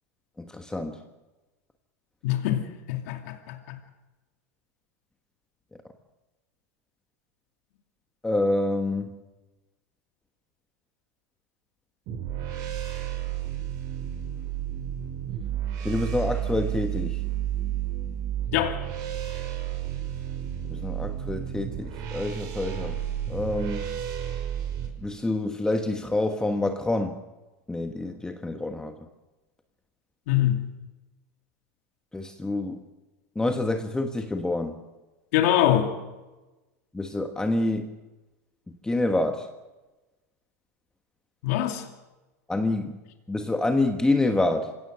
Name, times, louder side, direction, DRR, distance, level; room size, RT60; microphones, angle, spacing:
voice 1, 0.4-1.0 8.2-9.1 15.8-17.2 20.7-23.0 23.3-23.9 25.0-27.2 27.7-29.0 32.1-32.8 33.3-34.8 36.9-37.9 38.7-39.5 42.5-43.0 43.3-44.7, left 2 dB, 10° left, 1.3 m, -27 dB
voice 2, 2.2-2.6 2.9-3.8 18.5-18.8 30.3-30.7 35.3-35.9 41.4-41.8, left 12 dB, 65° left, 2.6 m, -24 dB
sound 1, 12.1-24.9, right 11 dB, 50° right, 5.6 m, -32 dB
26.0 x 17.5 x 6.3 m
supercardioid pair, 115°, 9 cm